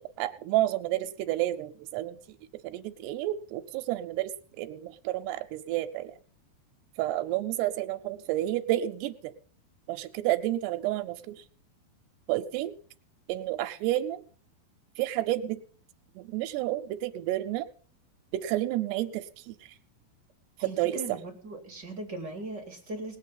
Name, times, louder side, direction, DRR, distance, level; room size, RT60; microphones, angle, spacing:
voice 1, 0.2-2.2 2.6-4.3 4.6-6.1 7.0-9.3 9.9-11.4 12.3-12.7 13.3-14.2 15.0-15.6 16.2-17.7 18.3-19.6 20.6-21.0, right 14 dB, 90° right, 7 dB, 2.9 m, -30 dB
voice 2, 20.6-23.2, right 2 dB, 30° right, 3 dB, 2.5 m, -39 dB
19.5 x 8.3 x 5.6 m, 0.44 s
omnidirectional pair, 4.7 m